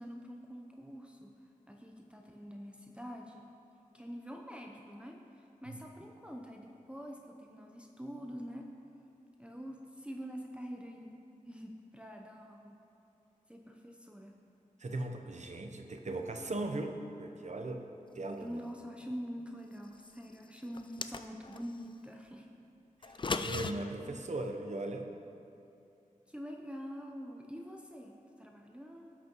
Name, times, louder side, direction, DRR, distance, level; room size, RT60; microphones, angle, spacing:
voice 1, 0.0-3.6 3.9-8.7 9.4-11.2 11.5-12.8 13.5-14.4 18.4-22.5 26.3-29.1, equal, 10° right, 0 dB, 0.7 m, -45 dB
voice 2, 14.8-17.9 18.1-18.6 23.0-25.1, right 2 dB, 55° right, 4 dB, 0.8 m, -38 dB
sound 1, 20.7-21.6 23.0-23.7, left 4 dB, 35° left, 0.3 m, -36 dB
17.0 x 6.1 x 3.0 m, 2.7 s
wide cardioid pair, 80°, 14 cm